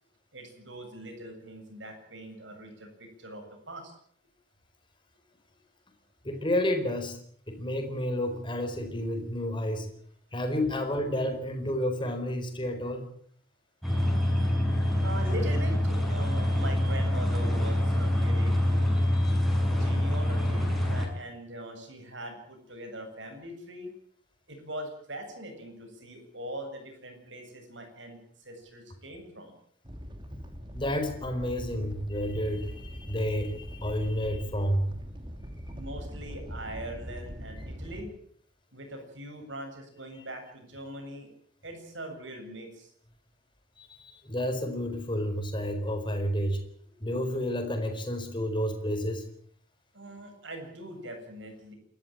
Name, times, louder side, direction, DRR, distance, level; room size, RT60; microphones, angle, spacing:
voice 1, 0.3-3.9 15.0-19.0 19.7-23.9 24.5-29.5 35.7-38.1 38.7-41.3 41.6-42.9 49.9-51.7, right 1 dB, 70° right, 5 dB, 7.8 m, -41 dB
voice 2, 6.2-7.2 7.5-9.9 10.3-13.1 19.2-19.3 30.7-34.9 43.8-46.6 47.0-49.2, equal, 25° left, 6 dB, 4.6 m, -30 dB
sound 1, 13.8-21.1, left 1 dB, ahead, 6.3 m, -26 dB
Animal, 29.8-38.0, equal, 25° right, 2.8 m, -41 dB
29.0 x 14.0 x 9.0 m, 0.62 s
head